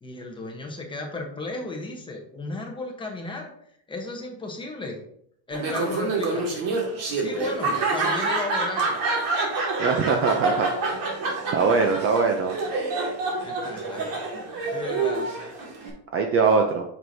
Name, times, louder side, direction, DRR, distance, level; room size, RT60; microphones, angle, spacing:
voice 1, 0.0-3.5 3.9-5.0 5.5-6.5 7.1-9.0 13.4-14.4 14.7-15.3, left 2 dB, 10° left, 1 dB, 1.0 m, -34 dB
Laughter, 5.5-15.9, right 3 dB, 50° right, 2.0 m, -27 dB
voice 2, 9.8-10.7 11.5-12.6 16.1-16.8, right 4 dB, 30° right, 4 dB, 0.5 m, -21 dB
7.7 x 6.1 x 2.7 m, 0.68 s
cardioid pair, 175°, 45 cm